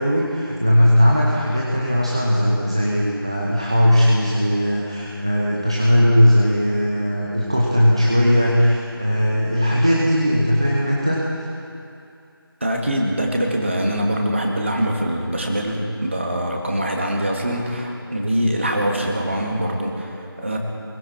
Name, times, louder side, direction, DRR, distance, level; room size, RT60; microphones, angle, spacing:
voice 1, 0.0-11.2, equal, 15° right, -5 dB, 0.9 m, -18 dB
voice 2, 12.6-20.6, equal, 30° right, 0 dB, 2.4 m, -23 dB
28.5 x 22.5 x 4.6 m, 2.6 s
figure-of-eight pair, 175°, 13 cm